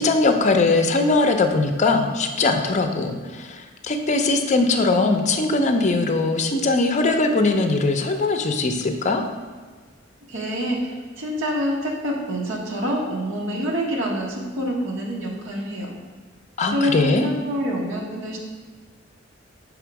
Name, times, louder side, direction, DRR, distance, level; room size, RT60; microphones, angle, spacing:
voice 1, 0.0-9.2 16.6-17.3, left 3 dB, 35° left, 6 dB, 0.5 m, -20 dB
voice 2, 10.3-15.9 16.7-18.4, equal, 80° right, -1 dB, 1.1 m, -26 dB
6.0 x 3.6 x 4.7 m, 1.5 s
head